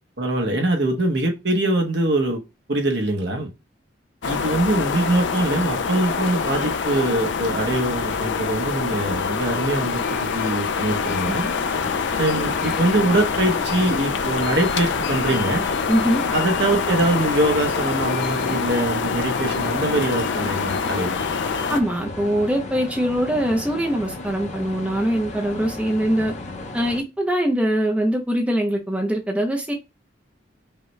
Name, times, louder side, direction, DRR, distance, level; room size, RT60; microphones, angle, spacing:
voice 1, 0.2-2.4 2.7-3.5 4.3-11.4 12.2-15.6 16.3-21.2, right 1 dB, 65° right, 1.1 m, -23 dB
sound 1, 4.2-21.8, left 5 dB, 70° left, 0.5 m, -25 dB
sound 2, 11.7-27.0, left 2 dB, 35° left, 0.7 m, -35 dB
voice 2, 15.9-16.2 21.7-26.3 26.7-29.7, equal, 5° right, 0.6 m, -22 dB
5.5 x 2.3 x 3.1 m
head